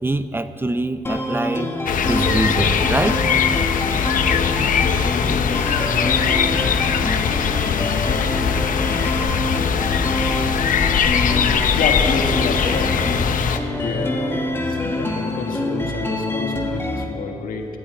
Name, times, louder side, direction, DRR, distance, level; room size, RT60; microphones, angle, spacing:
voice 1, 0.0-1.7 2.1-3.2, right 2 dB, 15° right, 11 dB, 0.5 m, -24 dB
sound 1, 1.0-17.0, left 1 dB, 15° left, 1.4 m, -26 dB
sound 2, 1.9-13.6, left 7 dB, 70° left, 0.7 m, -20 dB
voice 2, 11.7-12.9 13.8-17.7, left 4 dB, 85° left, 3 dB, 1.6 m, -28 dB
12.0 x 9.5 x 8.7 m, 2.9 s
cardioid pair, 100°, 14 cm